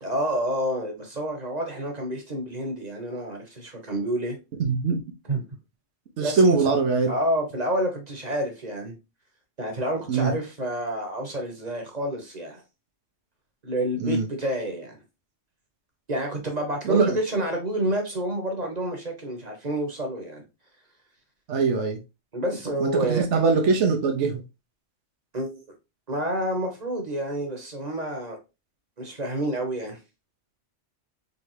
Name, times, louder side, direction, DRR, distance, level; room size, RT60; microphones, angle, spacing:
voice 1, 0.0-4.4 5.3-5.4 6.2-6.4 7.1-8.9 9.6-12.6 13.6-15.0 16.1-20.4 22.3-23.2 25.3-25.5 26.1-28.4 29.0-30.0, right 1 dB, 35° right, 1.2 m, -29 dB
voice 2, 4.6-5.0 6.2-7.1 10.1-10.3 14.0-14.2 16.8-17.2 21.5-22.0 22.8-24.4, right 4 dB, 75° right, 1.1 m, -22 dB
4.0 x 3.4 x 3.3 m
omnidirectional pair, 1.2 m